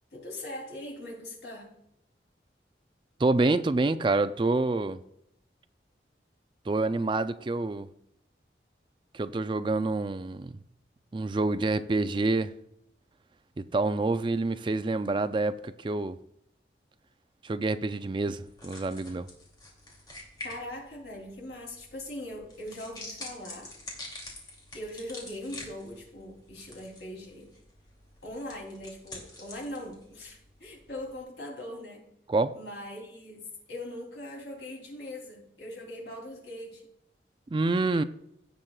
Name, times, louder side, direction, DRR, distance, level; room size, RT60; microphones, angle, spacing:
voice 1, 0.1-1.7 20.4-23.7 24.7-27.5 28.2-32.1 32.5-36.9, left 1 dB, 80° left, 3.1 m, -41 dB
voice 2, 3.2-5.0 6.7-7.9 9.1-10.5 11.1-12.5 13.6-16.2 17.4-19.3 32.3-32.6 37.5-38.0, right 2 dB, 30° right, 0.4 m, -27 dB
sound 1, 18.3-31.2, left 2 dB, 25° left, 2.7 m, -47 dB
17.0 x 7.4 x 2.3 m
head